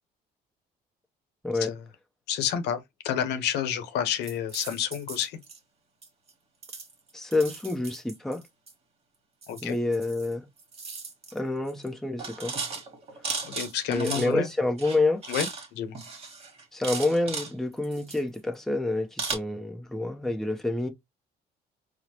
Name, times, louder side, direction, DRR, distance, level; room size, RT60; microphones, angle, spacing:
voice 1, 2.3-5.4 9.5-9.7 13.4-14.5 15.3-16.0, left 9 dB, 85° left, 0.8 m, -30 dB
sound 1, 4.2-5.6 6.0-6.3 6.6-8.7 9.4-10.3 10.6-11.4 11.7-11.9 12.2-14.5 14.8-15.7 15.9-17.5 17.8-18.5 19.2-19.3, right 4 dB, 35° right, 1.3 m, -36 dB
voice 2, 7.1-8.4 9.6-10.4 11.3-12.5 13.9-15.2 16.7-20.9, left 2 dB, ahead, 0.6 m, -28 dB
4.5 x 2.1 x 2.8 m
cardioid pair, 110°, 17 cm